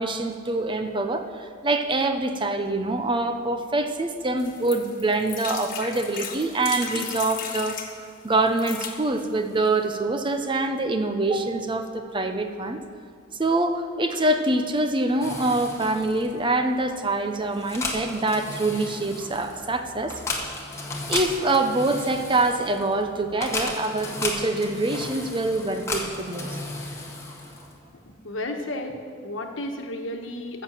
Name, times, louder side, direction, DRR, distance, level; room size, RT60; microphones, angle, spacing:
voice 1, 0.0-7.8 8.2-12.8 13.4-20.1 21.1-26.6, right 2 dB, 25° right, 7 dB, 0.7 m, -25 dB
sound 1, 4.4-7.9 8.5-9.0 9.6-9.7 9.9-10.0, left 7 dB, 45° left, 1.3 m, -35 dB
sound 2, 15.2-27.9, left 2 dB, 15° left, 1.5 m, -35 dB
voice 2, 28.0-30.6, left 1 dB, 80° left, 4 dB, 1.3 m, -33 dB
14.0 x 6.6 x 7.5 m, 2.1 s
head